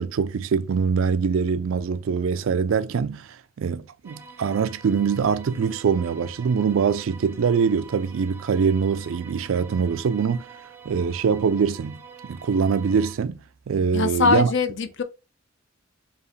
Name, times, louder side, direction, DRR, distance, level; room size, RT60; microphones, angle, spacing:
voice 1, 0.0-10.5 10.9-13.4 13.7-14.5, right 6 dB, 75° right, 0.4 m, -23 dB
sound 1, 4.0-13.1, right 5 dB, 10° right, 0.5 m, -46 dB
voice 2, 13.9-15.0, left 5 dB, 60° left, 0.7 m, -22 dB
4.6 x 2.8 x 3.2 m
head